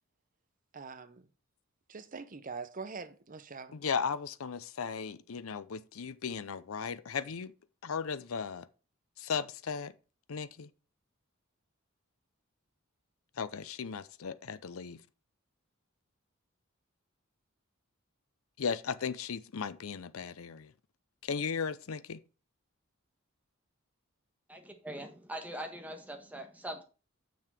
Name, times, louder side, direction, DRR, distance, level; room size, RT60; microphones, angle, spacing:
voice 1, 0.7-1.3 1.9-3.8, right 4 dB, 40° right, 0.8 m, -43 dB
voice 2, 3.7-7.5 7.8-8.7 9.2-9.9 10.3-10.7 13.4-15.0 18.6-20.7 21.2-22.2, left 6 dB, 85° left, 0.6 m, -36 dB
voice 3, 24.5-26.8, right 1 dB, 5° right, 1.6 m, -42 dB
6.9 x 6.2 x 5.8 m
head